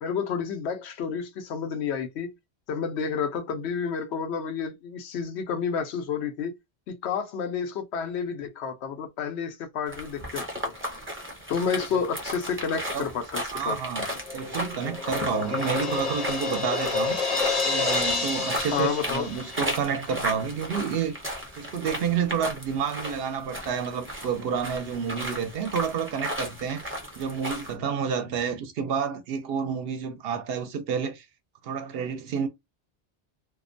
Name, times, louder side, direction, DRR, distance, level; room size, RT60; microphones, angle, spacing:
voice 1, 0.0-2.3 2.7-6.6 6.9-10.7 11.5-13.8 18.7-19.3, left 6 dB, 90° left, 0.9 m, -30 dB
sound 1, 9.9-27.7, equal, 15° right, 0.5 m, -35 dB
voice 2, 13.5-14.1 14.3-17.2 17.6-21.2 21.6-31.2 31.6-32.5, right 7 dB, 70° right, 0.7 m, -29 dB
Crash cymbal, 14.3-20.0, left 4 dB, 45° left, 0.6 m, -29 dB
2.4 x 2.1 x 2.5 m
omnidirectional pair, 1.1 m